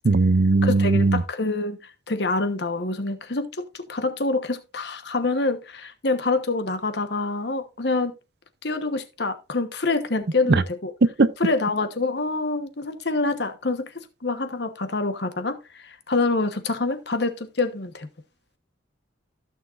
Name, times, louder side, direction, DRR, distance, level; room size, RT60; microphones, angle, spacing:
voice 1, 0.0-1.2 10.5-10.6 11.2-11.3, right 3 dB, 55° right, 0.6 m, -18 dB
voice 2, 0.6-8.1 8.6-10.9 11.4-18.1, left 3 dB, 60° left, 1.2 m, -26 dB
15.0 x 6.6 x 2.5 m
head